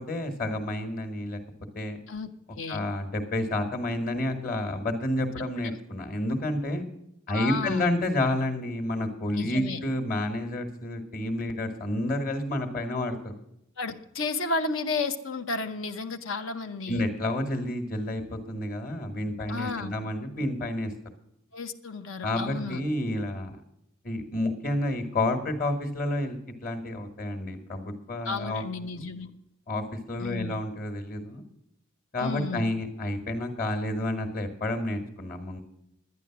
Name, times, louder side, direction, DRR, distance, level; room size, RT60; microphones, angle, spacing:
voice 1, 0.0-1.4 1.7-2.0 2.7-6.8 7.3-13.3 16.9-20.9 22.2-23.6 24.0-28.6 29.7-31.4 32.1-35.6, left 1 dB, 45° left, 5 dB, 1.6 m, -30 dB
voice 2, 2.1-2.8 5.4-5.8 7.3-7.9 9.3-9.8 13.8-17.1 19.5-19.9 21.5-22.8 28.2-29.3 30.2-30.5 32.2-32.7, left 3 dB, 75° left, 8 dB, 0.9 m, -33 dB
10.5 x 10.5 x 6.0 m, 0.80 s
head